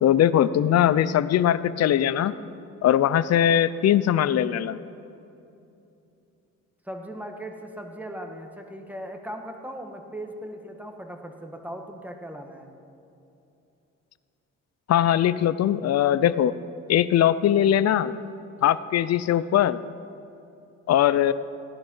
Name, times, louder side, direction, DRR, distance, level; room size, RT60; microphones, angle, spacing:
voice 1, 0.0-2.3 2.8-4.8 14.9-16.5 16.9-18.1 18.6-19.8 20.9-21.3, left 10 dB, 60° left, 16 dB, 0.6 m, -21 dB
voice 2, 6.8-12.7, right 1 dB, 5° right, 3 dB, 1.6 m, -38 dB
16.5 x 10.5 x 5.5 m, 2.8 s
cardioid pair, 90°, 30 cm